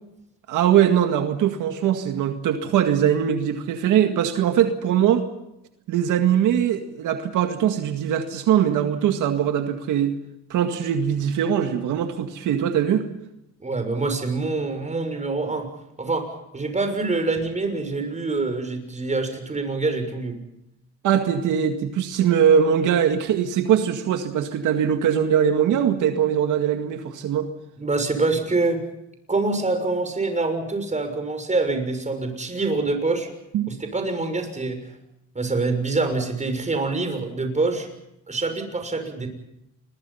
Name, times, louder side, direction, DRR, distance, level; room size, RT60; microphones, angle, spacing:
voice 1, 0.5-5.2 5.9-10.2 10.5-13.1 21.0-27.5 33.5-33.7, right 9 dB, 85° right, 6 dB, 2.0 m, -21 dB
voice 2, 13.6-15.7 16.0-20.4 27.8-28.8 29.3-33.3 33.7-34.8 35.3-37.9 38.3-39.3, right 3 dB, 25° right, 6 dB, 6.5 m, -25 dB
28.5 x 22.5 x 5.7 m, 0.85 s
cardioid pair, 90°, 30 cm